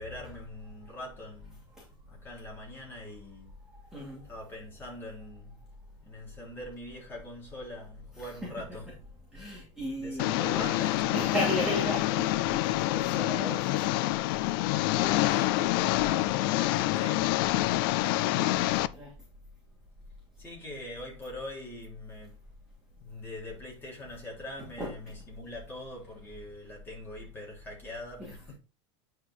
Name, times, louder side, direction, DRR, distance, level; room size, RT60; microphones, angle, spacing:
voice 1, 0.0-1.6 2.0-3.5 4.2-5.6 6.0-9.0 9.8-11.4 14.9-17.5 20.4-22.4 23.0-28.5, left 1 dB, 15° left, 3.4 m, -42 dB
voice 2, 3.9-4.2 8.1-8.5 9.3-10.4 11.1-14.0 17.9-19.1 24.8-24.9 28.2-28.3, equal, 5° right, 2.6 m, -35 dB
Engine, 10.2-18.9, left 17 dB, 50° left, 0.4 m, -27 dB
9.4 x 4.6 x 4.1 m
supercardioid pair, 170°, 15 cm